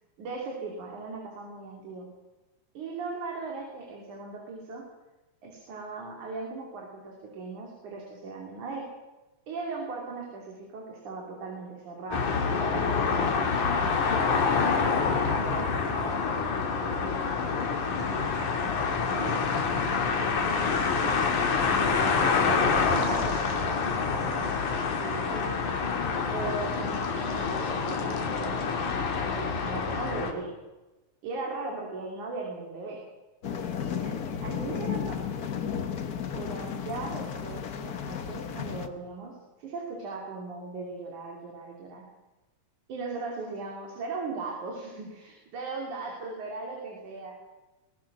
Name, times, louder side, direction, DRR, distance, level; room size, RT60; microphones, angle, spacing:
voice 1, 0.2-2.1 2.7-4.8 5.4-8.8 9.5-13.7 14.0-14.7 15.0-17.4 17.9-19.3 20.4-25.6 26.2-30.5 31.2-33.0 33.5-35.3 36.3-42.0 42.9-47.3, right 3 dB, 85° right, -1 dB, 4.5 m, -38 dB
sound 1, 12.1-30.3, left 5 dB, 90° left, 3.7 m, -27 dB
sound 2, 33.4-38.9, left 8 dB, 65° left, 0.9 m, -33 dB
22.0 x 19.0 x 6.2 m, 1.1 s
omnidirectional pair, 3.4 m